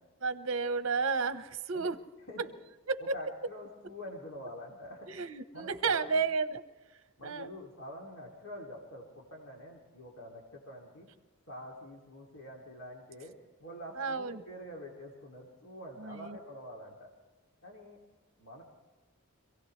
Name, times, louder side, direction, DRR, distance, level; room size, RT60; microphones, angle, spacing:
voice 1, 0.2-2.0 2.9-3.1 5.1-6.6 7.2-7.5 14.0-14.4 16.0-16.4, right 4 dB, 60° right, 10 dB, 0.9 m, -32 dB
voice 2, 3.0-5.1 5.5-6.1 7.2-11.1 11.5-17.1 17.6-18.0 18.4-18.6, equal, 70° left, -2 dB, 2.7 m, -46 dB
26.5 x 17.0 x 3.2 m, 1.2 s
head